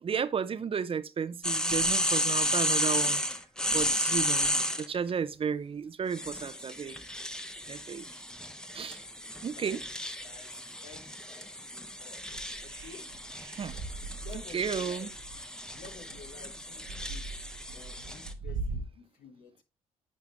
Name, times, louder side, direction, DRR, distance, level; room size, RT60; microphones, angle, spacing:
voice 1, 0.0-3.2 3.7-7.0 7.7-8.1 8.7-9.0 9.4-9.8 13.6-13.8 14.3-15.1, right 6 dB, 40° right, 0.5 m, -33 dB
sound 1, 1.4-4.9 6.1-18.3, equal, 5° left, 0.8 m, -33 dB
voice 2, 9.5-12.2 12.6-13.1 14.2-15.1 15.8-17.3 17.7-19.6, left 6 dB, 80° left, 1.2 m, -51 dB
sound 2, 12.3-18.8, right 3 dB, 90° right, 0.9 m, -40 dB
9.5 x 3.5 x 3.2 m
supercardioid pair, 55°, 14 cm